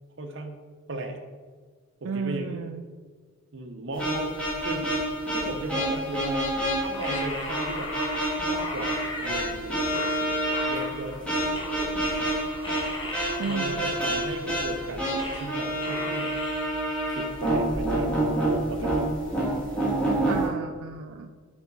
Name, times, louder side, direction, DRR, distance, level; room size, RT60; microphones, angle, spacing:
voice 1, 0.2-0.6 0.9-1.2 2.0-2.6 3.5-4.3 4.6-5.0 5.3-8.0 8.4-12.4 13.4-16.4 17.1-18.1 18.4-19.1, right 1 dB, 60° right, 5 dB, 0.7 m, -37 dB
voice 2, 2.0-2.8 13.4-13.9 20.2-21.3, right 5 dB, 85° right, 7 dB, 0.4 m, -33 dB
sound 1, 4.0-20.5, right 1 dB, 5° left, 1.6 m, -28 dB
sound 2, 6.9-9.5 9.9-11.3 11.5-15.6 15.8-16.7, left 2 dB, 20° left, 1.0 m, -37 dB
4.9 x 4.6 x 5.4 m, 1.5 s
head